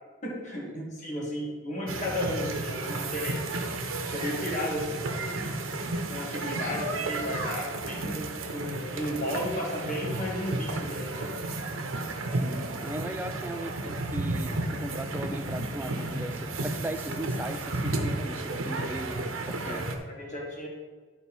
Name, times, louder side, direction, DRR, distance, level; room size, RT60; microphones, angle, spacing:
voice 1, 0.2-3.6 4.0-5.3 6.1-11.3 19.6-20.7, left 1 dB, 35° left, -3 dB, 1.8 m, -34 dB
sound 1, 1.9-20.0, right 2 dB, 85° right, 0.9 m, -33 dB
voice 2, 12.3-19.9, right 1 dB, 10° right, 7 dB, 0.4 m, -38 dB
11.5 x 4.0 x 4.3 m, 1.4 s
head